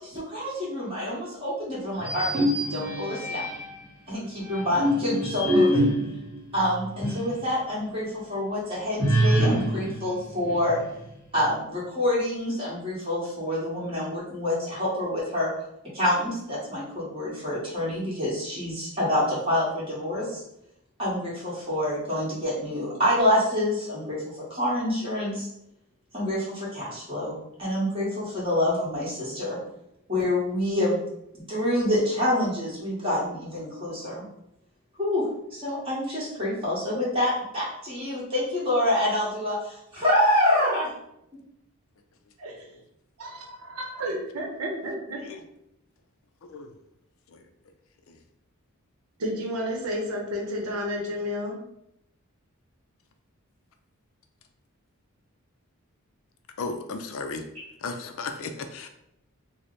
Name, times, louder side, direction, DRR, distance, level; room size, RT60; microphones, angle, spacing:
voice 1, 0.0-2.4 2.7-3.4 4.1-5.9 6.5-10.8 11.3-15.5 15.9-20.4 21.0-25.5 26.1-27.3 27.6-29.6 30.1-31.0 31.5-34.2 35.0-40.9, left 1 dB, 25° right, -8 dB, 1.5 m, -27 dB
sound 1, 2.0-3.8 4.4-7.4 7.8-7.9 9.0-11.1, equal, 5° right, 1.4 m, -26 dB
voice 2, 43.2-45.2 49.2-51.6, equal, 85° right, 0 dB, 0.8 m, -31 dB
voice 3, 46.4-46.7 47.3-47.5 48.1-48.2 56.6-57.4 57.8-58.9, left 3 dB, 65° left, 7 dB, 0.4 m, -35 dB
3.1 x 2.1 x 4.0 m, 0.79 s
head